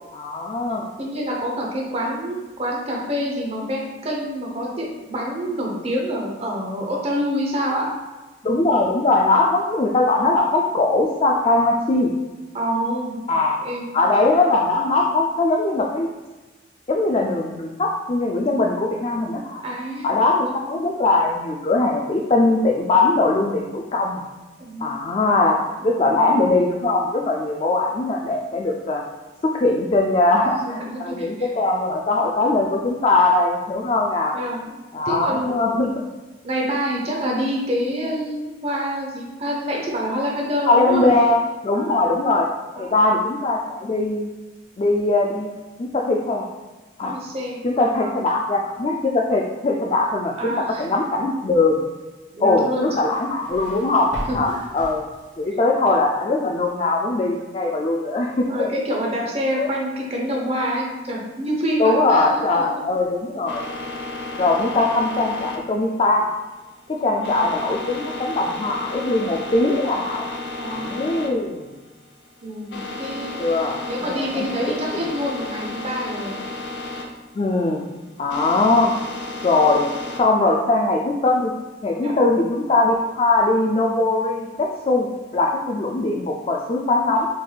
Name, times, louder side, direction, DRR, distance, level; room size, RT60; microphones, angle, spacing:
voice 1, 0.1-0.9 8.4-12.1 13.3-13.6 13.9-16.1 16.9-19.6 20.0-24.2 24.8-29.0 29.4-34.4 34.9-35.9 40.7-42.5 42.8-44.3 44.8-45.5 45.8-46.5 47.0-47.2 47.6-51.8 52.4-55.0 55.4-58.7 59.6-59.7 61.8-63.6 64.4-66.3 66.9-70.3 70.7-71.7 73.4-74.8 77.4-77.8 78.2-78.9 79.4-79.9 80.2-81.5 81.8-87.3, left 2 dB, 30° left, 0 dB, 0.3 m, -20 dB
voice 2, 1.0-7.9 12.5-13.2 13.6-13.8 19.6-20.6 24.6-24.9 25.8-26.2 30.5-31.5 34.3-34.6 35.0-35.9 36.4-41.1 41.7-42.0 42.8-43.0 47.1-47.6 48.0-48.2 50.4-50.8 52.3-52.9 54.3-54.6 58.5-62.8 67.1-67.4 70.6-71.0 72.4-73.3 73.8-76.3 82.0-82.1, equal, 35° right, -2 dB, 0.9 m, -27 dB
sound 1, 52.9-55.5, right 1 dB, 80° right, 1.1 m, -36 dB
sound 2, 63.5-80.2, left 2 dB, 70° left, 0.6 m, -33 dB
6.6 x 3.4 x 2.3 m, 1.2 s
head